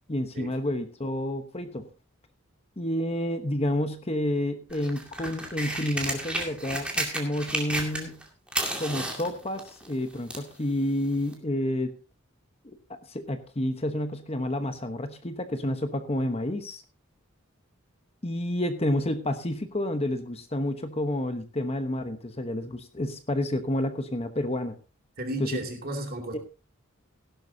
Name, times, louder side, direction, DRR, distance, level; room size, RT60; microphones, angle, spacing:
voice 1, 0.1-1.9 2.8-8.2 8.8-11.9 12.6-16.8 18.2-24.8 25.4-25.6 26.3-26.4, left 1 dB, 30° left, 9 dB, 1.0 m, -30 dB
sound 1, 4.7-8.2 8.5-10.5 11.3-11.4, right 1 dB, 5° right, 2.3 m, -32 dB
voice 2, 25.2-26.4, right 1 dB, 45° right, 3 dB, 2.7 m, -33 dB
16.5 x 11.5 x 2.8 m, 0.33 s
head